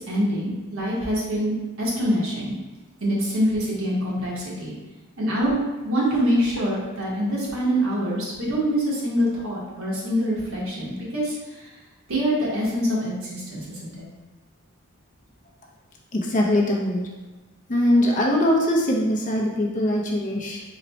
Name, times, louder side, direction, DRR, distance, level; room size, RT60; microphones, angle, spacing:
voice 1, 0.1-2.5 3.0-4.7 5.2-5.6 5.8-11.7 12.1-14.0, equal, 65° right, -6 dB, 1.3 m, -25 dB
voice 2, 16.1-17.1 17.7-20.6, left 1 dB, 35° left, -1 dB, 0.6 m, -22 dB
4.0 x 2.2 x 4.1 m, 1.2 s
head